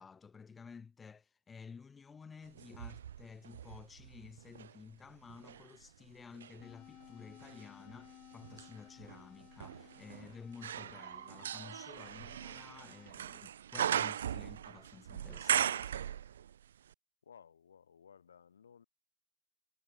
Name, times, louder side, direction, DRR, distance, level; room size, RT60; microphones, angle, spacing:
voice 1, 0.0-16.0, left 5 dB, 20° left, 1.5 m, -53 dB
sound 1, 2.6-4.8 5.3-16.6 16.9-17.0, right 10 dB, 80° right, 0.9 m, -39 dB
sound 2, 6.6-13.1, left 14 dB, 45° left, 2.7 m, -58 dB
voice 2, 17.2-18.9, left 7 dB, 85° left, 6.8 m, -58 dB
hypercardioid pair, 85°, 0 cm